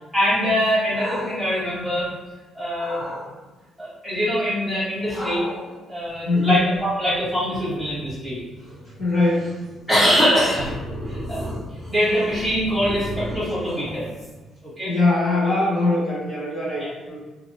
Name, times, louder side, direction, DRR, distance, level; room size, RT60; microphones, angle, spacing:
voice 1, 0.1-2.1 2.5-3.0 3.8-5.4 5.9-8.4 9.9-10.7 11.1-11.5 11.9-14.0 14.6-14.9 16.8-16.9, equal, ahead, -11 dB, 1.3 m, -23 dB
sound 1, 0.6-2.3 2.7-3.2 5.1-14.6, equal, 15° left, 1.1 m, -36 dB
voice 2, 6.2-6.7 9.0-9.6 14.9-17.2, left 2 dB, 45° left, -8 dB, 0.8 m, -21 dB
2.5 x 2.4 x 2.9 m, 1.2 s
cardioid pair, 160°, 0 cm